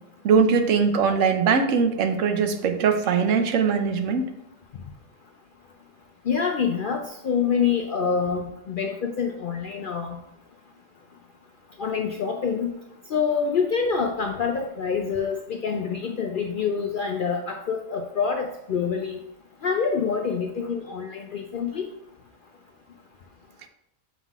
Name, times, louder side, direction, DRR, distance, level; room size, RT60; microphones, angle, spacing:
voice 1, 0.2-4.3, right 5 dB, 75° right, 7 dB, 1.0 m, -21 dB
voice 2, 6.3-10.2 11.8-12.7 13.1-19.2 19.6-21.8, left 6 dB, 65° left, 3 dB, 0.5 m, -26 dB
7.1 x 5.5 x 2.4 m, 0.80 s
omnidirectional pair, 1.4 m